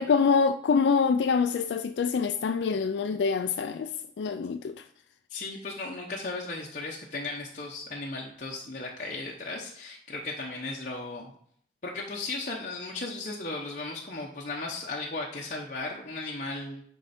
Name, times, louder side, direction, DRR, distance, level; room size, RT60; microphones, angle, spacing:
voice 1, 0.0-4.9, left 5 dB, 80° left, 0.3 m, -25 dB
voice 2, 5.3-11.3 11.8-16.8, left 2 dB, 45° left, 0.9 m, -36 dB
9.8 x 4.6 x 4.3 m
head